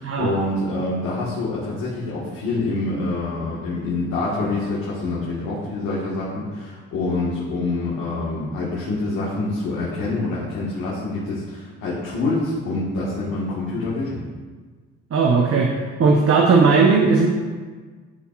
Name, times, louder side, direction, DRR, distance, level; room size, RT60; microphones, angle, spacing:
voice 1, 0.0-14.2, left 2 dB, 80° left, -7 dB, 1.6 m, -26 dB
voice 2, 15.1-15.7 16.0-17.3, right 4 dB, 50° right, 0 dB, 0.8 m, -16 dB
11.0 x 4.2 x 2.4 m, 1.4 s
supercardioid pair, 60°, 31 cm